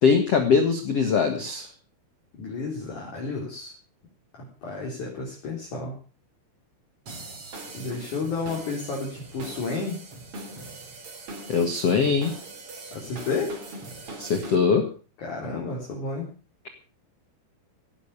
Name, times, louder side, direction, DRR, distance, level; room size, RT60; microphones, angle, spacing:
voice 1, 0.0-1.7 11.5-12.3 14.2-14.9, left 5 dB, 90° left, 6 dB, 1.3 m, -21 dB
voice 2, 2.3-3.7 4.4-6.0 7.7-10.0 12.9-13.5 15.2-16.3, left 4 dB, 40° left, -2 dB, 4.6 m, -31 dB
sound 1, 7.1-14.6, right 2 dB, 35° right, 3.3 m, -41 dB
16.5 x 11.5 x 6.7 m, 0.38 s
omnidirectional pair, 5.7 m